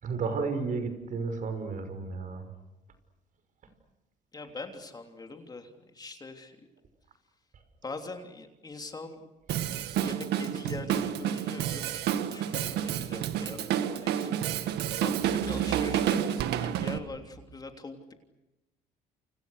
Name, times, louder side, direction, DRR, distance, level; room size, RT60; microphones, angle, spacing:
voice 1, 0.0-2.5 12.3-12.5 15.7-15.8, right 4 dB, 50° right, 9 dB, 5.9 m, -33 dB
voice 2, 4.3-6.6 7.8-9.2 10.0-14.4 14.6-14.7 15.0-18.1, left 3 dB, 25° left, 5 dB, 3.2 m, -42 dB
Drum kit, 9.5-17.0, right 10 dB, 80° right, 1.8 m, -29 dB
30.0 x 28.0 x 6.6 m, 0.99 s
cardioid pair, 110°, 17 cm